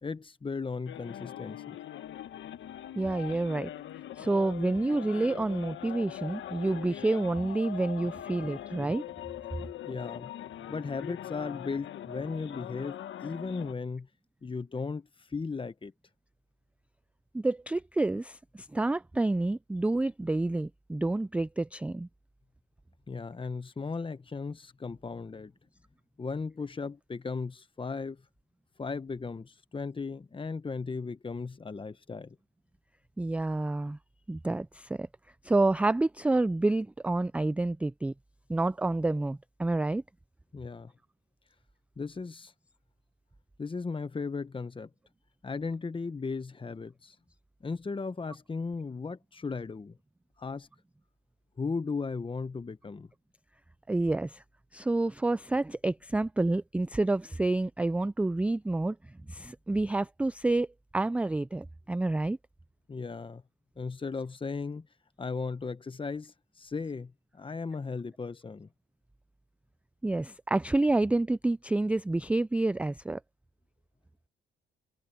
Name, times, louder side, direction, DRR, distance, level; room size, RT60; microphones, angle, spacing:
voice 1, 0.0-1.8 9.8-10.3 10.6-14.1 14.4-15.9 23.1-25.5 26.2-28.2 28.8-32.4 40.5-40.9 42.0-42.5 43.6-44.9 45.4-47.1 47.6-50.0 50.4-50.7 51.6-53.1 62.9-63.4 63.8-64.9 65.2-68.7, left 4 dB, 25° left, 1.3 m, -36 dB
sound 1, 0.9-13.7, left 11 dB, 70° left, 1.3 m, -42 dB
voice 2, 3.0-3.7 4.2-9.0 17.3-22.1 33.2-34.0 34.3-35.1 35.4-38.1 38.5-40.0 53.9-54.4 54.7-59.0 59.3-60.7 60.9-62.4 70.0-73.2, right 2 dB, 5° right, 0.3 m, -28 dB
cardioid pair, 90°, 20 cm